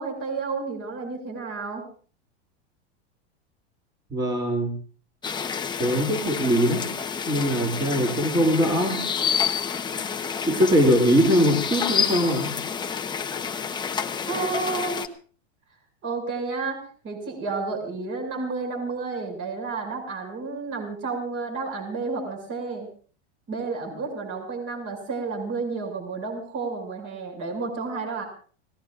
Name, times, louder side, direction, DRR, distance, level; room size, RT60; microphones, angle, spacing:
voice 1, 0.0-1.8 14.3-15.0 16.0-22.9 23.5-28.3, right 4 dB, 35° right, 4 dB, 6.7 m, -31 dB
voice 2, 4.1-4.7 5.8-6.9 7.2-9.1 10.4-12.6, equal, 10° right, 1 dB, 2.9 m, -22 dB
sound 1, 5.2-15.1, left 6 dB, 15° left, 1.0 m, -29 dB
29.5 x 19.5 x 2.5 m, 0.42 s
supercardioid pair, 135°, 34 cm